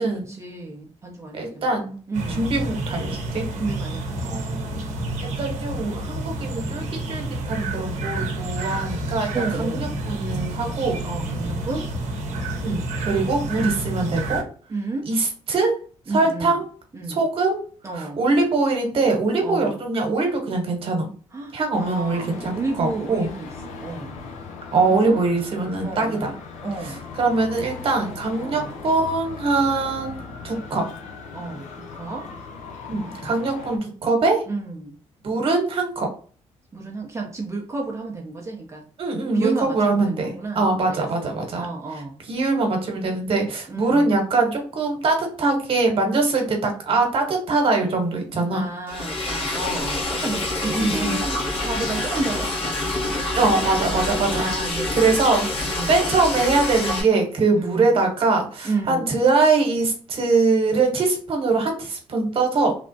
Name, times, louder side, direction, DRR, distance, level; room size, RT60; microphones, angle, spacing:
voice 1, 0.0-1.7 2.1-2.4 3.6-4.2 9.3-10.0 11.0-11.9 14.7-15.1 16.1-16.6 16.9-17.2 17.8-18.2 19.4-19.8 21.3-24.2 24.9-25.2 25.8-26.4 26.6-27.0 28.4-28.8 31.3-32.3 34.5-35.0 36.7-38.8 39.3-41.1 41.5-42.2 43.7-44.2 48.5-53.3 54.4-54.9 55.7-56.0 57.6-57.9 58.6-59.2, right 3 dB, 25° right, 0 dB, 0.5 m, -32 dB
voice 2, 1.3-1.9 2.3-3.4 4.2-4.9 5.4-11.0 12.6-14.4 15.1-15.7 16.1-16.7 17.1-17.6 17.9-21.1 21.5-23.3 24.7-26.3 26.8-30.8 32.9-34.4 35.2-36.1 39.0-41.7 42.3-48.6 50.6-51.2 53.4-54.5 54.9-55.5 55.9-62.8, right 3 dB, 50° right, 2 dB, 1.0 m, -22 dB
sound 1, 2.1-14.4, right 2 dB, 75° right, 0.7 m, -29 dB
Traffic noise roadway noise, 21.7-33.8, left 4 dB, 85° left, 0.6 m, -39 dB
Liquid, 48.9-57.0, left 2 dB, 50° left, 0.9 m, -26 dB
3.3 x 2.0 x 2.6 m, 0.41 s
cardioid pair, 105°, 12 cm